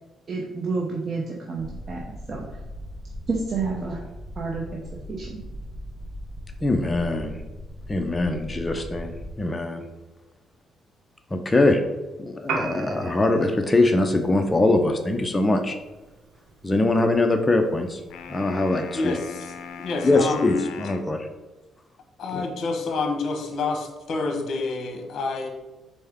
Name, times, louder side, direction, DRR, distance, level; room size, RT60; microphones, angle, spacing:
voice 1, 0.3-2.4 3.3-4.0 4.4-4.6 5.1-5.4, right 4 dB, 45° right, -2 dB, 0.7 m, -29 dB
sound 1, 1.6-9.3, equal, 5° right, 0.8 m, -39 dB
voice 2, 6.6-7.4 7.9-9.8 11.3-11.8 12.2-15.8 16.6-18.0 18.3-19.2 20.0-21.3 22.3-22.4, left 2 dB, 20° left, 4 dB, 0.5 m, -22 dB
Piano, 12.4-20.4, right 4 dB, 85° right, 0.9 m, -40 dB
sound 2, 18.1-21.1, left 7 dB, 80° left, 0.4 m, -39 dB
voice 3, 18.9-19.5 19.8-20.6 22.2-25.5, left 3 dB, 60° left, 3 dB, 0.9 m, -28 dB
4.3 x 3.4 x 3.5 m, 1.1 s
cardioid pair, 90°, 0 cm